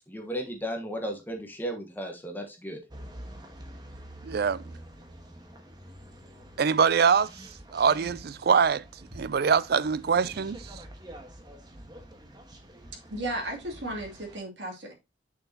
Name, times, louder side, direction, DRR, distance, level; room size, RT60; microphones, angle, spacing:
voice 1, 0.1-2.8, equal, 10° left, 1.3 m, -35 dB
sound 1, 2.9-14.4, right 1 dB, 25° right, 1.3 m, -47 dB
voice 2, 4.2-4.6 6.6-7.3 7.7-8.8 9.2-10.6, right 6 dB, 60° right, 0.4 m, -23 dB
voice 3, 13.1-14.9, right 1 dB, 80° right, 2.7 m, -34 dB
6.7 x 6.3 x 2.8 m
head